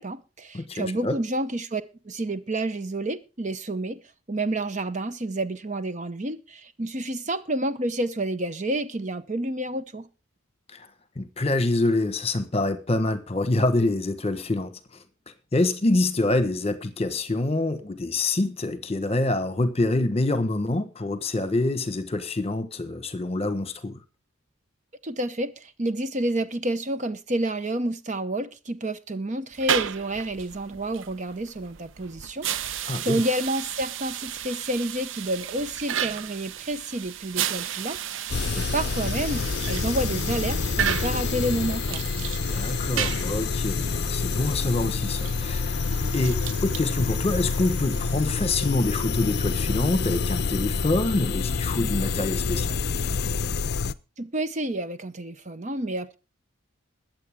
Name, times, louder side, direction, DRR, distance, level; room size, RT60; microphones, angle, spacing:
voice 1, 0.0-4.0 4.3-10.1 25.0-42.0 54.2-56.2, right 1 dB, 35° right, 0.8 m, -29 dB
voice 2, 0.5-1.2 10.7-10.9 11.2-14.8 15.5-24.0 32.9-33.2 42.5-45.8 46.1-52.8, left 2 dB, 30° left, 1.2 m, -26 dB
sound 1, 29.5-49.1, right 9 dB, 65° right, 0.6 m, -34 dB
sound 2, 38.3-53.9, left 4 dB, 50° left, 0.5 m, -27 dB
22.0 x 7.7 x 3.6 m
head